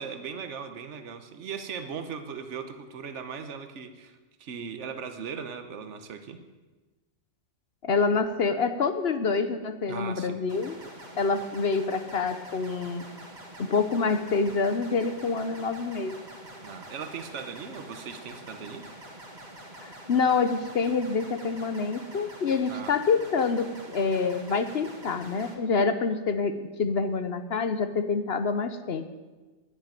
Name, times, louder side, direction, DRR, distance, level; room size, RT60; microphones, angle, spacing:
voice 1, 0.0-6.4 9.9-10.4 16.6-18.9 22.7-23.0, right 6 dB, 70° right, 8 dB, 1.3 m, -38 dB
voice 2, 7.8-10.8 11.2-13.1 13.6-16.2 19.8-29.0, left 4 dB, 60° left, 10 dB, 1.0 m, -27 dB
sound 1, 10.5-25.5, right 1 dB, 35° right, 1.9 m, -46 dB
10.5 x 10.0 x 9.1 m, 1.2 s
omnidirectional pair, 1.3 m